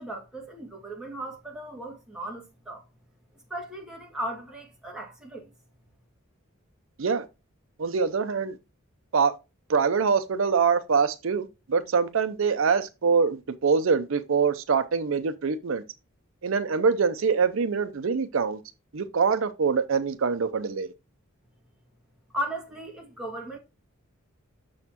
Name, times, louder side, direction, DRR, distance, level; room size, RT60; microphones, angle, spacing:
voice 1, 0.0-2.8 3.5-5.5 22.3-23.6, right 1 dB, 5° right, 2.0 m, -36 dB
voice 2, 7.8-8.6 9.1-9.4 9.7-15.8 16.4-18.6 18.9-20.9, right 5 dB, 65° right, 0.5 m, -24 dB
6.7 x 6.4 x 2.8 m
head